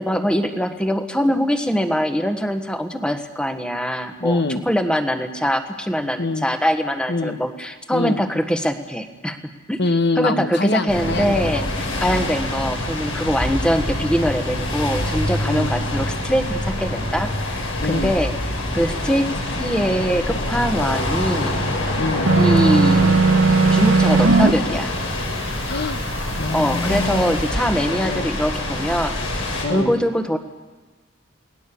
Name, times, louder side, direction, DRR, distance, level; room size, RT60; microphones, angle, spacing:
voice 1, 0.0-9.4 9.7-9.8 10.2-18.3 18.7-19.3 19.6-21.6 22.4-23.2 23.7-24.9 26.5-29.4 29.7-30.4, equal, 5° left, 6 dB, 1.4 m, -23 dB
voice 2, 4.2-4.6 6.2-6.5 7.1-7.4 7.9-8.2 9.8-11.7 12.1-12.3 15.4-15.7 17.8-18.1 22.0-22.3 25.7-26.0 26.4-27.4 28.0-28.3 29.6-29.9, left 3 dB, 55° left, 8 dB, 1.3 m, -24 dB
sound 1, 10.9-29.6, left 1 dB, 75° left, 6.6 m, -25 dB
sound 2, 22.3-24.5, right 3 dB, 85° right, 1.8 m, -16 dB
29.0 x 19.0 x 7.0 m, 1.3 s
head